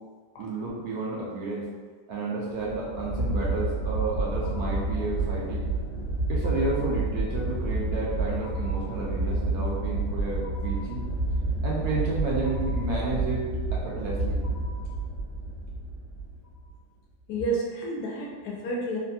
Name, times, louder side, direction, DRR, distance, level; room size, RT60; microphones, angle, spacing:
voice 1, 0.4-1.7 2.1-5.7 6.3-11.0 11.6-13.5 13.7-14.4, right 3 dB, 70° right, -5 dB, 1.0 m, -31 dB
sound 1, 2.6-16.7, right 2 dB, 35° left, 0.8 m, -29 dB
voice 2, 17.3-19.0, right 2 dB, 75° left, -2 dB, 1.0 m, -30 dB
3.3 x 2.3 x 2.6 m, 1.5 s
omnidirectional pair, 1.9 m